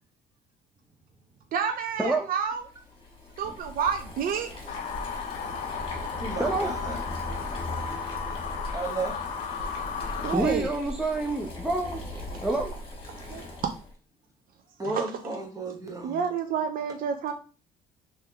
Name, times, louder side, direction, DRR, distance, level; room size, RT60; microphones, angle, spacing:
voice 1, 1.5-2.7 3.4-4.5 10.2-10.7 13.3-13.4 14.9-15.0 16.0-17.3, right 7 dB, 60° right, 6 dB, 0.5 m, -29 dB
Boiling, 2.6-13.9, left 1 dB, 30° left, 1.6 m, -38 dB
sound 1, 4.7-10.4, left 6 dB, 45° left, 0.5 m, -35 dB
voice 2, 6.1-7.0 7.4-7.7 8.7-9.3 14.8-16.2, right 3 dB, 20° right, 2 dB, 1.1 m, -34 dB
voice 3, 10.3-12.0 12.4-12.7, right 2 dB, 5° right, 2 dB, 0.5 m, -27 dB
3.5 x 3.1 x 3.4 m, 0.36 s
cardioid pair, 110°, 17 cm